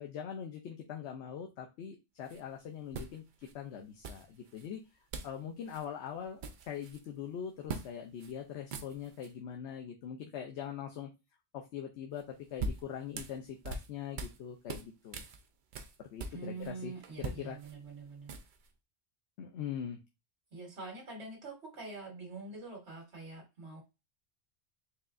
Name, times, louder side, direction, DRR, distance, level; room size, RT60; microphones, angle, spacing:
voice 1, 0.0-3.2 3.5-4.8 5.2-11.1 11.5-15.3 16.0-17.6 19.4-20.0, left 8 dB, 80° left, 3 dB, 0.9 m, -42 dB
sound 1, 2.2-2.4 2.9-3.5 4.0-4.7 5.1-5.4 5.7-5.9 6.2-7.1 7.7-7.9 8.2-8.3 8.6-9.3 12.2-14.4 14.7-16.7 17.0-18.7, right 3 dB, 55° right, 0.6 m, -42 dB
voice 2, 16.3-18.3 20.5-23.8, right 3 dB, 75° right, 0 dB, 1.6 m, -45 dB
4.6 x 3.2 x 2.5 m, 0.26 s
omnidirectional pair, 1.2 m